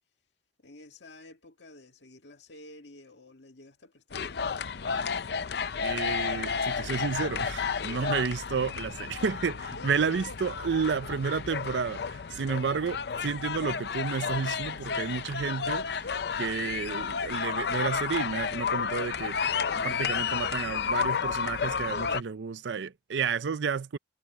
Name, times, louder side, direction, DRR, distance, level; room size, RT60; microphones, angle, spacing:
voice 1, 0.6-4.7 7.8-8.2 9.7-11.3 14.8-15.1 21.9-22.3, left 2 dB, 90° left, 1.9 m, -49 dB
sound 1, 4.1-22.2, left 6 dB, 65° left, 0.5 m, -32 dB
voice 2, 5.8-16.1 16.4-19.3 19.8-24.0, right 5 dB, 85° right, 0.5 m, -31 dB
head